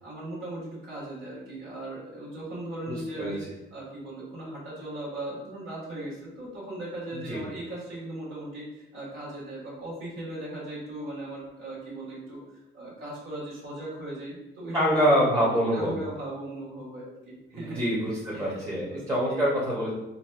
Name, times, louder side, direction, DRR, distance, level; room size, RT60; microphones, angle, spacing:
voice 1, 0.0-12.4 12.7-17.8 18.3-19.5, right 1 dB, 85° right, -7 dB, 1.4 m, -38 dB
voice 2, 14.7-15.9 17.5-19.9, equal, 15° right, -6 dB, 0.8 m, -25 dB
3.9 x 2.2 x 2.3 m, 0.94 s
cardioid pair, 90°, 20 cm